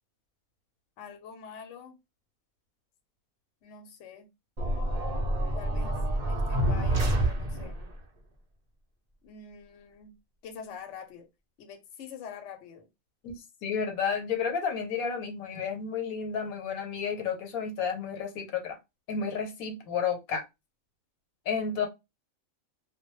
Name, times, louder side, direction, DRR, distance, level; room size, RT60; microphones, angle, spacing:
voice 1, 1.0-2.0 3.6-4.3 5.5-6.0 6.3-7.8 9.2-10.1 10.4-11.3 11.6-12.9, left 7 dB, 65° left, 0.9 m, -45 dB
sound 1, 4.6-7.9, right 1 dB, 55° right, 0.4 m, -28 dB
voice 2, 13.2-18.8 19.1-20.4 21.5-21.9, left 6 dB, 85° left, 1.1 m, -31 dB
2.2 x 2.1 x 3.0 m
omnidirectional pair, 1.5 m